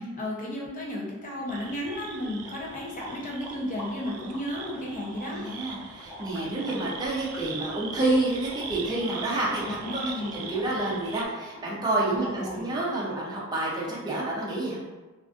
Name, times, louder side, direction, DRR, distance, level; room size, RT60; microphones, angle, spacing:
voice 1, 0.0-5.5 9.6-10.3 12.2-12.7, left 1 dB, 35° left, -3 dB, 0.6 m, -33 dB
sound 1, 1.4-13.0, left 1 dB, 15° left, 1.0 m, -46 dB
sound 2, 1.5-11.3, right 6 dB, 85° right, 0.3 m, -42 dB
voice 2, 5.3-14.8, right 2 dB, 20° right, -5 dB, 0.4 m, -29 dB
2.4 x 2.4 x 2.4 m, 1.2 s
head